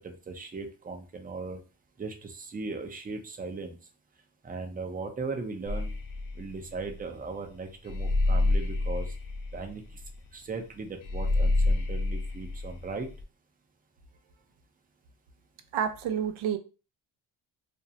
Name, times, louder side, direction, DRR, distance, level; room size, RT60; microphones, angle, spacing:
voice 1, 0.0-1.6 2.0-3.8 4.4-6.0 6.4-9.1 9.5-10.0 10.3-13.1, right 3 dB, 20° right, 0.4 m, -38 dB
sound 1, 5.7-13.2, left 2 dB, 45° left, 0.5 m, -28 dB
voice 2, 15.7-16.6, right 8 dB, 75° right, 0.5 m, -29 dB
2.5 x 2.0 x 2.6 m
cardioid pair, 90°, 48 cm